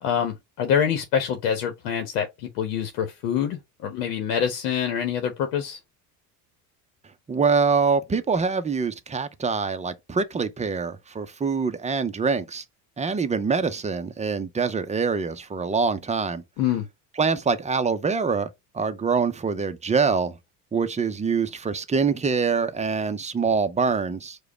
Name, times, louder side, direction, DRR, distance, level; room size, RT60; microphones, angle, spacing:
voice 1, 0.0-5.8 16.6-16.8, left 8 dB, 70° left, 1.0 m, -26 dB
voice 2, 7.3-12.6 13.0-16.4 17.2-18.5 18.7-20.3 20.7-24.4, right 5 dB, 15° right, 0.6 m, -24 dB
4.9 x 2.3 x 4.3 m
hypercardioid pair, 75°, 46 cm